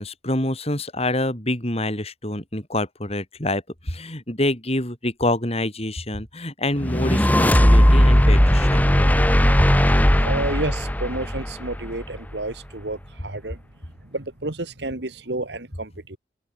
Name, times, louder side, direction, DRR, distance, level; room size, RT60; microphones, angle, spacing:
voice 1, 0.0-9.3, left 1 dB, 35° left, 6.7 m, -26 dB
sound 1, 6.8-12.1, equal, 10° left, 1.6 m, -17 dB
voice 2, 10.2-13.6 14.1-16.2, right 2 dB, 65° right, 2.4 m, -30 dB
open air
head